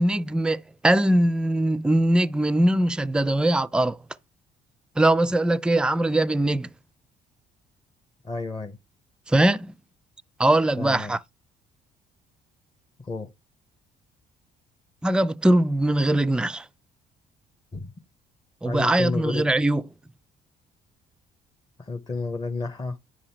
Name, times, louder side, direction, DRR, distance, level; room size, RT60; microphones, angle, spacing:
voice 1, 0.0-4.0 5.0-6.7 9.3-9.7 10.4-11.2 15.0-16.6 18.6-19.8, right 1 dB, 5° right, 0.3 m, -21 dB
voice 2, 8.2-8.8 10.8-11.1 13.0-13.3 17.7-17.9 18.6-19.4 21.8-23.0, left 3 dB, 20° left, 0.9 m, -31 dB
9.9 x 3.6 x 4.4 m
cardioid pair, 110°, 17 cm